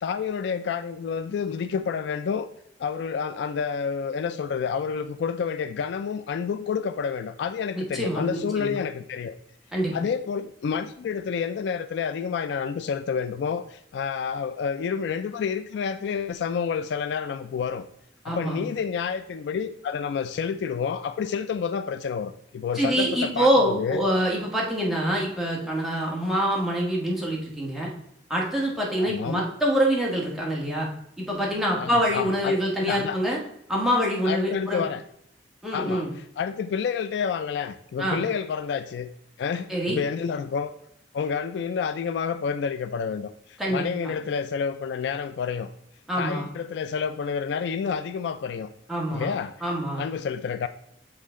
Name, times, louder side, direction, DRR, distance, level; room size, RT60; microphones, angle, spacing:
voice 1, 0.0-2.5 2.8-9.3 9.9-17.9 18.2-24.0 29.0-29.5 31.8-33.2 34.2-35.0 35.7-39.1 39.4-40.7 41.1-45.7 46.2-48.7 49.1-49.5 50.0-50.7, left 6 dB, 70° left, 10 dB, 0.3 m, -29 dB
voice 2, 7.7-8.8 9.7-9.9 18.2-18.6 22.7-27.9 28.3-30.9 31.2-33.4 33.7-34.8 35.6-36.1 38.0-38.2 39.7-40.0 43.6-44.1 46.1-46.5 48.9-49.3 49.6-50.0, equal, ahead, -4 dB, 1.5 m, -25 dB
7.4 x 3.8 x 3.6 m, 0.72 s
head